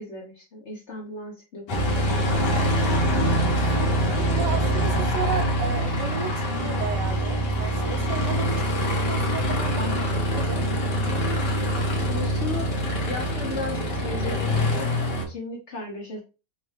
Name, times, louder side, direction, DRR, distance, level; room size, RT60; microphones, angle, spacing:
voice 1, 0.0-3.5 12.0-14.9 15.3-16.2, left 2 dB, 50° left, 1.0 m, -36 dB
Aircraft, 1.7-15.2, equal, 70° left, 1.7 m, -24 dB
voice 2, 4.3-8.6 9.0-10.7, right 6 dB, 75° right, 1.3 m, -33 dB
5.4 x 2.2 x 3.2 m
omnidirectional pair, 1.9 m